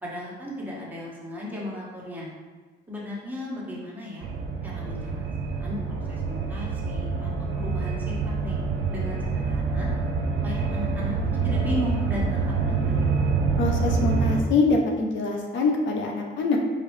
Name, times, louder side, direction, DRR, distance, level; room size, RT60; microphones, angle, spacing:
voice 1, 0.0-2.3 2.9-4.3 4.6-8.6 8.9-9.9 10.4-11.1 11.4-12.5 12.8-13.1, left 1 dB, 10° right, -6 dB, 1.2 m, -35 dB
sound 1, 4.2-14.4, right 4 dB, 65° right, 0.5 m, -26 dB
voice 2, 13.6-16.6, left 3 dB, 70° left, 1 dB, 0.6 m, -24 dB
3.8 x 3.2 x 3.2 m, 1.4 s
cardioid pair, 90°, 20 cm